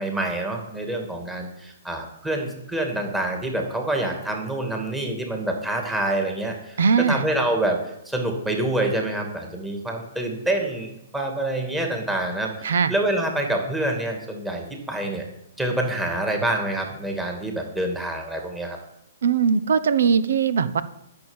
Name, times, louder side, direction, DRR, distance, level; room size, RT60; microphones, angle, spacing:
voice 1, 0.0-6.8 7.1-7.8 8.0-15.2 15.6-18.8, right 1 dB, 5° right, 2 dB, 2.5 m, -26 dB
voice 2, 6.8-7.2 12.6-12.9 19.2-20.8, right 6 dB, 75° right, 14 dB, 1.0 m, -20 dB
10.5 x 6.9 x 9.0 m, 0.83 s
hypercardioid pair, 150°, 0 cm